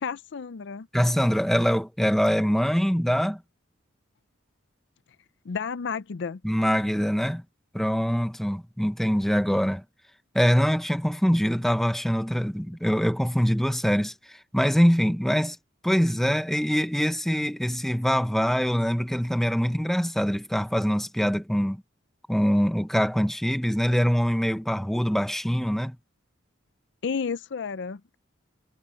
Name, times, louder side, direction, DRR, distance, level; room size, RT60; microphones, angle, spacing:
voice 1, 0.0-0.9 5.5-6.4 27.0-28.2, left 5 dB, 60° left, 0.5 m, -32 dB
voice 2, 0.9-3.4 6.4-7.4 7.7-9.8 10.3-15.6 15.8-21.8 22.3-26.0, equal, ahead, 0.8 m, -24 dB
head